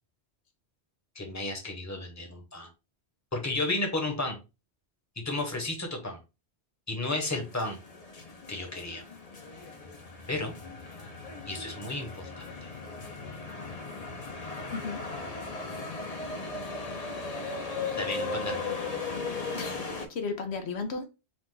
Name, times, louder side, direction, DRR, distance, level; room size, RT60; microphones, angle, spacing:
voice 1, 1.1-2.7 3.3-4.4 5.2-6.2 6.9-7.8 8.5-9.0 10.3-10.5 11.5-12.7 18.0-18.7, left 2 dB, 15° left, 1.1 m, -33 dB
sound 1, 7.2-20.1, left 3 dB, 40° left, 0.8 m, -37 dB
voice 2, 14.7-15.0 19.5-21.0, left 4 dB, 75° left, 1.0 m, -34 dB
4.9 x 2.5 x 3.8 m
omnidirectional pair, 1.1 m